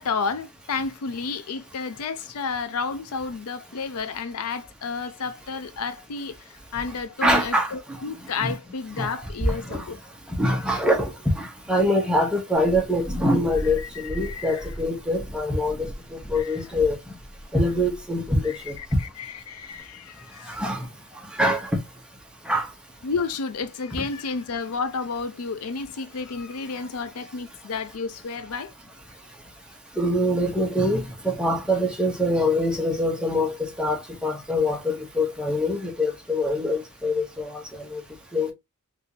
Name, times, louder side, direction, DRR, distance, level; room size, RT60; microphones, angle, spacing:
voice 1, 0.0-6.4 6.7-10.0 13.8-14.7 16.4-16.6 18.4-20.6 23.0-28.7, left 5 dB, 80° left, 0.5 m, -31 dB
voice 2, 7.2-7.7 8.4-8.5 9.0-9.1 9.5-9.8 10.3-11.1 11.4-17.0 17.5-18.8 20.5-20.8 21.4-21.7 22.5-22.7 30.0-37.6 37.9-38.0 38.3-38.5, left 1 dB, 5° right, 0.9 m, -24 dB
Purr, 12.5-18.9 19.6-19.7, equal, 15° left, 1.3 m, -38 dB
3.5 x 2.6 x 2.9 m
head